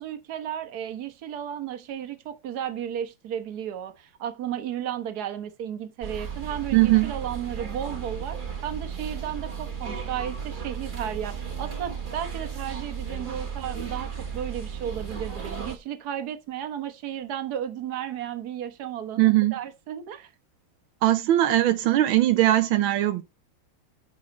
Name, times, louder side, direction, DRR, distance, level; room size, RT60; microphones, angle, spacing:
voice 1, 0.0-20.3, right 9 dB, 55° right, 1.6 m, -34 dB
sound 1, 6.0-15.8, right 6 dB, 25° right, 1.4 m, -34 dB
voice 2, 6.7-7.1 19.2-19.5 21.0-23.2, right 15 dB, 85° right, 1.6 m, -20 dB
9.6 x 6.4 x 4.0 m
omnidirectional pair, 2.2 m